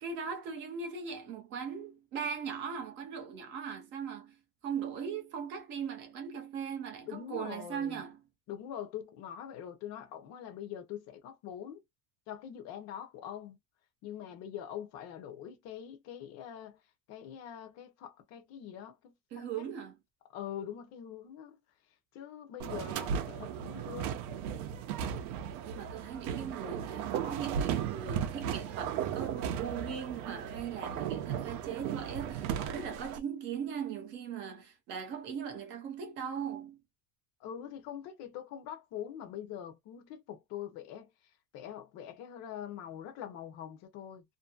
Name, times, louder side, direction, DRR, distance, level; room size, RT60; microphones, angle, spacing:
voice 1, 0.0-4.4 4.6-8.2 19.3-20.0 25.6-36.8, right 7 dB, 25° right, 0.4 m, -39 dB
voice 2, 7.1-8.0 8.5-11.8 12.3-13.6 14.0-16.8 17.1-19.7 20.3-21.6 22.1-24.2 37.4-41.1 41.5-44.2, left 10 dB, 35° left, 0.6 m, -43 dB
sound 1, 22.6-33.2, right 8 dB, 65° right, 0.7 m, -36 dB
2.7 x 2.6 x 2.3 m
cardioid pair, 170°, 47 cm